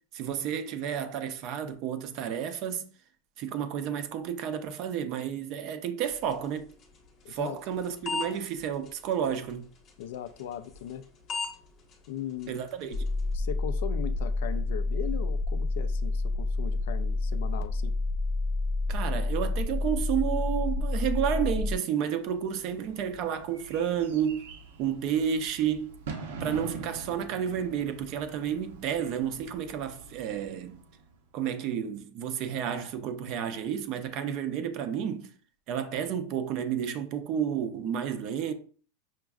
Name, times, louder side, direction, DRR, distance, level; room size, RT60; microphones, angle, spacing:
voice 1, 0.1-2.9 3.4-6.7 7.3-9.7 12.5-13.1 18.9-24.4 24.8-26.0 26.4-30.8 31.3-35.3 35.7-38.5, right 8 dB, 35° right, 0.5 m, -31 dB
sound 1, 6.1-13.3, left 4 dB, 25° left, 0.8 m, -42 dB
voice 2, 7.2-7.6 10.0-11.0 12.1-12.6 13.3-18.0, left 10 dB, 65° left, 0.3 m, -38 dB
sound 2, 12.9-21.8, left 2 dB, 90° left, 0.7 m, -29 dB
Bird / Fireworks, 22.0-31.2, right 4 dB, 90° right, 0.9 m, -44 dB
5.9 x 2.5 x 2.3 m
supercardioid pair, 175°, 0 cm